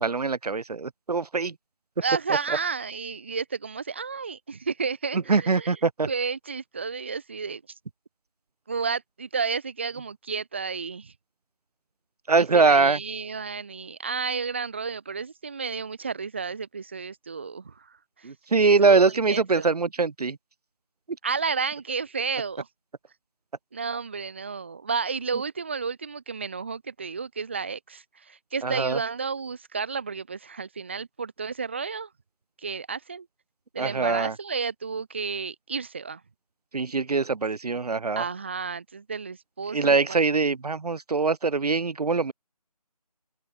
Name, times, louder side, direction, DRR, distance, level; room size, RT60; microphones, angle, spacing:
voice 1, 0.0-1.5 5.1-6.1 12.3-13.0 18.2-20.4 28.6-29.0 33.8-34.3 36.7-38.2 39.7-42.3, right 4 dB, 75° right, 0.7 m, -23 dB
voice 2, 2.0-5.7 6.1-7.6 8.7-11.1 12.4-17.9 18.2-18.3 18.8-19.7 21.2-22.7 23.7-32.1 32.6-33.3 33.7-36.2 38.2-40.2, right 5 dB, 20° right, 0.9 m, -32 dB
open air
figure-of-eight pair, 170°, 20 cm